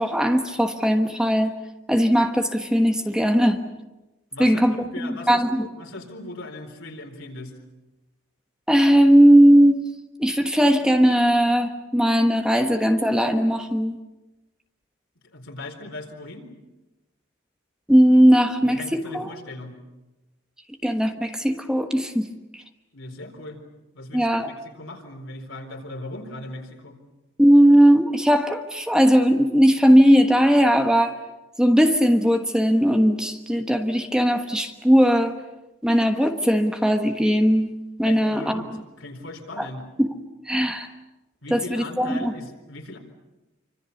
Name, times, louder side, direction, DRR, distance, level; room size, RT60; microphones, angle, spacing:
voice 1, 0.0-1.5 1.9-3.6 4.4-5.7 8.7-9.9 10.2-14.0 17.9-19.3 20.8-22.3 24.1-24.5 27.4-31.2 31.6-35.4 35.8-37.7 38.0-38.6 39.6-39.7 40.0-40.1 40.5-40.9 41.5-42.3, equal, 5° right, 5 dB, 1.2 m, -18 dB
voice 2, 4.3-7.5 15.3-16.4 18.6-19.7 22.9-23.6 23.9-27.0 38.0-38.7 39.0-39.8 41.4-43.0, left 2 dB, 80° left, 3 dB, 4.4 m, -38 dB
27.0 x 25.5 x 7.0 m, 1.0 s
head